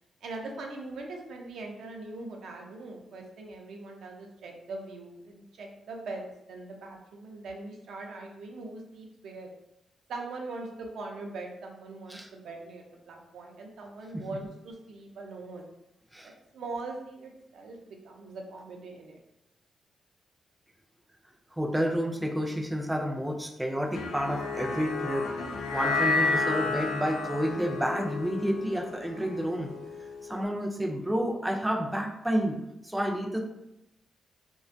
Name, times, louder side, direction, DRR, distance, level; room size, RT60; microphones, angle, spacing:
voice 1, 0.2-9.5 10.1-15.7 16.2-19.2, right 3 dB, 80° right, 1 dB, 0.4 m, -41 dB
voice 2, 21.5-25.3 25.7-29.7 30.3-33.4, equal, 10° right, 1 dB, 0.3 m, -30 dB
sound 1, 23.9-30.3, left 3 dB, 90° left, 0.3 m, -31 dB
2.5 x 2.2 x 2.5 m, 0.85 s
cardioid pair, 95°, 0 cm